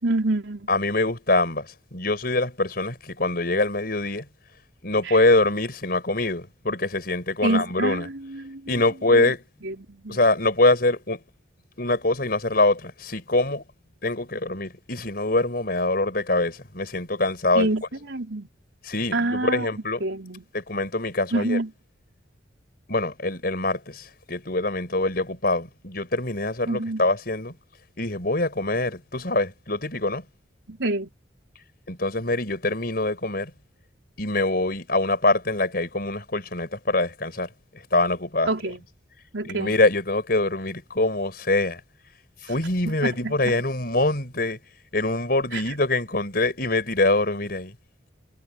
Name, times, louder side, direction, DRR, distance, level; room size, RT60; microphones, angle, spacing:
voice 1, 0.0-0.7 5.1-5.2 7.4-8.7 9.1-9.3 9.6-10.2 17.5-18.5 19.1-19.7 20.0-20.4 21.3-21.7 26.7-27.0 30.7-31.1 38.5-38.8 39.3-39.7 42.9-43.6 45.5-45.6, right 2 dB, 80° right, 3.9 m, -27 dB
voice 2, 0.7-4.3 4.8-8.1 8.7-9.4 10.1-11.2 11.8-13.6 14.0-17.7 18.8-20.0 20.5-21.6 22.9-27.6 28.0-30.2 31.9-33.5 34.2-37.5 37.9-38.5 39.4-41.8 42.4-44.6 44.9-47.7, left 2 dB, 55° left, 5.4 m, -24 dB
head